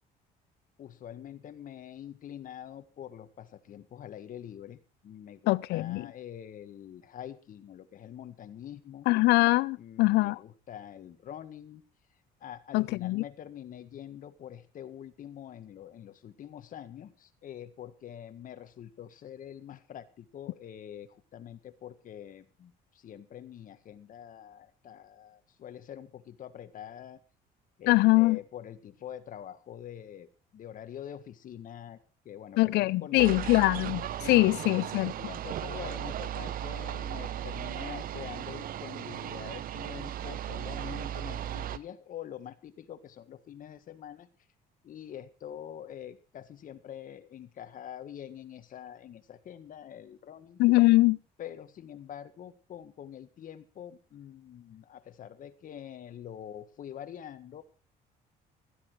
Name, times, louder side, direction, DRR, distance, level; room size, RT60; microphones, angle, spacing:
voice 1, 0.8-9.1 9.8-11.8 12.4-27.2 27.8-33.7 34.2-34.7 35.2-44.3 44.8-50.6 51.4-57.6, left 10 dB, 55° left, 1.7 m, -45 dB
voice 2, 5.5-6.0 9.1-10.4 12.7-13.2 27.9-28.4 32.6-35.1 50.6-51.2, left 20 dB, 85° left, 0.6 m, -23 dB
sound 1, 33.2-41.8, right 11 dB, 55° right, 0.9 m, -36 dB
15.5 x 13.5 x 4.7 m
cardioid pair, 110°, 17 cm